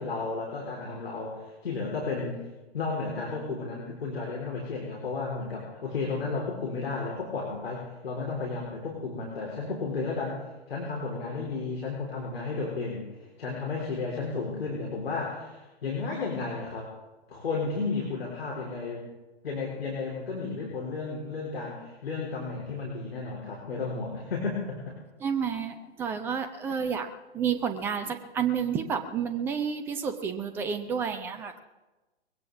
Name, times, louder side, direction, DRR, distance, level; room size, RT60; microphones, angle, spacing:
voice 1, 0.0-2.4 2.7-10.4 10.7-16.9 17.3-19.0 19.4-25.0 26.7-26.8, left 4 dB, 60° left, -2 dB, 4.0 m, -33 dB
voice 2, 25.2-27.1 27.3-31.6, right 7 dB, 5° right, 9 dB, 0.5 m, -30 dB
21.5 x 17.0 x 3.5 m, 1.1 s
figure-of-eight pair, 120°, 34 cm